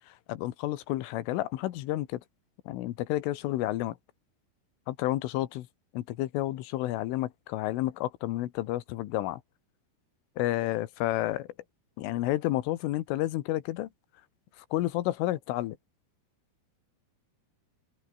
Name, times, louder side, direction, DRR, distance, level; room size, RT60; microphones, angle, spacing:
voice 1, 0.1-2.2 2.7-4.0 4.9-5.7 5.9-9.4 10.4-11.5 12.0-13.9 14.7-15.8, left 15 dB, 85° left, 3.9 m, -30 dB
omnidirectional pair, 5.6 m